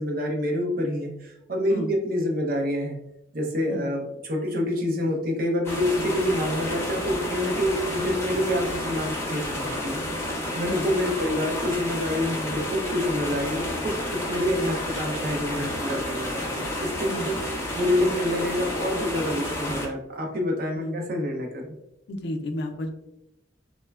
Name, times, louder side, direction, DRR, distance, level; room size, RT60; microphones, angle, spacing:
voice 1, 0.0-3.0 3.3-17.4 17.7-21.7, left 1 dB, 50° right, 1 dB, 0.5 m, -27 dB
sound 1, 5.6-19.9, left 1 dB, 15° left, 0.5 m, -30 dB
voice 2, 22.1-22.9, left 1 dB, 65° left, 4 dB, 0.4 m, -32 dB
3.1 x 2.1 x 2.3 m, 0.83 s
head